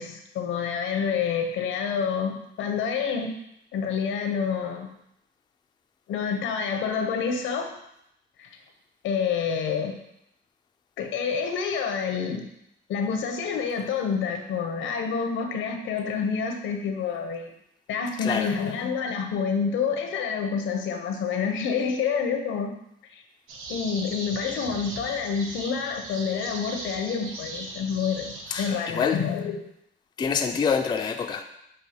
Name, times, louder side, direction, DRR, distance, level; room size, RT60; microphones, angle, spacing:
voice 1, 0.0-3.3 3.7-4.9 6.1-7.7 8.4-8.5 9.0-10.0 11.0-12.5 12.9-17.5 17.9-22.7 23.1-23.2 23.7-29.6, left 6 dB, 80° left, 4 dB, 0.6 m, -28 dB
sound 1, 23.5-28.7, right 2 dB, 85° right, 0.7 m, -38 dB
voice 2, 28.5-29.2 30.2-31.4, left 6 dB, 20° left, 5 dB, 0.3 m, -26 dB
6.4 x 2.4 x 2.8 m, 0.79 s
cardioid pair, 90°, 20 cm